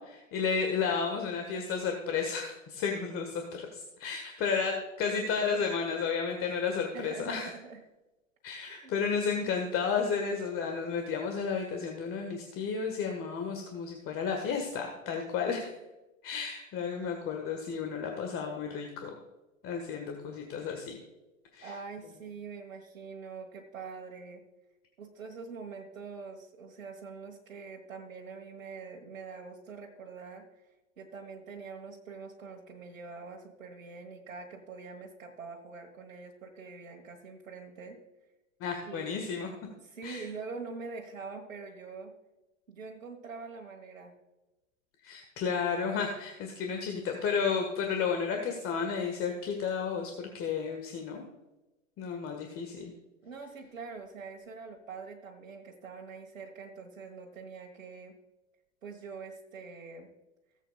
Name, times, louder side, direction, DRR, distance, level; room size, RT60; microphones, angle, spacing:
voice 1, 0.0-7.5 8.4-15.7 16.2-19.1 19.6-21.0 21.5-21.7 38.6-39.5 40.0-40.2 45.0-51.2 52.0-52.9, left 6 dB, 35° left, 3 dB, 1.7 m, -32 dB
voice 2, 6.9-7.8 8.7-8.9 21.6-24.4 25.0-30.5 31.0-38.0 38.8-39.3 39.8-42.1 42.7-44.2 53.2-58.1 58.8-60.1, right 4 dB, 80° right, 0 dB, 1.7 m, -44 dB
18.0 x 8.2 x 2.4 m, 1.0 s
hypercardioid pair, 95°, 40 cm